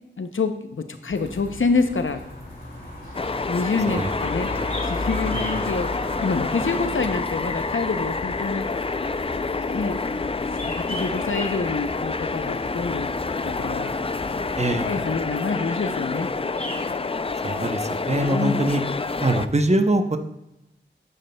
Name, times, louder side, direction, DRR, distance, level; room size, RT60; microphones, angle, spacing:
voice 1, 0.2-2.2 3.5-4.5 4.8-5.9 6.2-8.7 9.7-10.0 10.6-13.1 13.4-13.9 14.8-16.3 18.1-18.7, left 4 dB, 85° left, 8 dB, 0.6 m, -26 dB
sound 1, 1.1-15.3, left 1 dB, 50° left, 2.5 m, -36 dB
sound 2, 2.5-17.0, equal, 5° left, 2.8 m, -44 dB
sound 3, 3.1-19.5, left 3 dB, 30° left, 0.3 m, -28 dB
voice 2, 5.3-5.7 14.6-14.9 17.4-18.8 19.2-20.2, right 1 dB, 35° right, 6 dB, 0.8 m, -23 dB
9.7 x 9.3 x 2.2 m, 0.90 s
wide cardioid pair, 45°, 20 cm